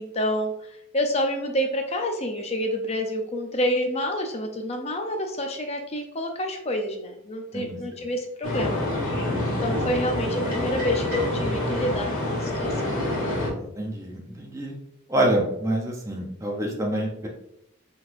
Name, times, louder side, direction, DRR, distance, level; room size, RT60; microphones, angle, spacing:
voice 1, 0.0-8.8 9.6-13.1, equal, 30° left, 4 dB, 0.5 m, -28 dB
sound 1, 8.4-13.5, left 1 dB, 90° left, 1.5 m, -27 dB
voice 2, 13.6-14.7 15.1-17.3, right 1 dB, 15° right, -1 dB, 0.7 m, -27 dB
4.1 x 4.1 x 2.6 m, 0.79 s
head